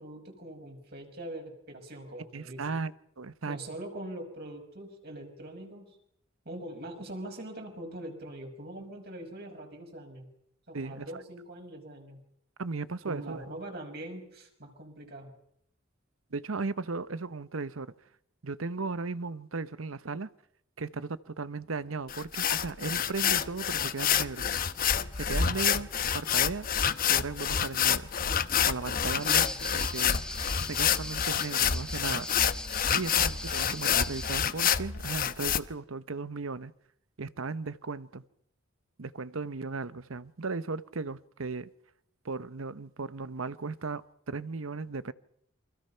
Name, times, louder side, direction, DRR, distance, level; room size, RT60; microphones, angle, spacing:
voice 1, 0.0-2.8 3.4-6.0 6.4-10.3 10.7-12.2 13.0-15.3, right 1 dB, 50° right, 5.9 m, -42 dB
voice 2, 2.3-2.9 3.2-3.6 10.7-11.1 12.6-13.4 16.3-17.9 18.4-20.3 20.8-24.4 25.1-25.9 26.1-26.7 27.1-28.1 28.6-29.5 29.7-30.2 30.6-32.3 32.9-36.7 37.2-38.2 39.0-41.7 42.2-45.1, right 4 dB, 80° right, 0.9 m, -36 dB
sound 1, 22.1-35.6, left 8 dB, 45° left, 0.9 m, -28 dB
sound 2, 29.2-34.3, left 1 dB, 5° left, 1.1 m, -40 dB
29.0 x 24.5 x 5.7 m
head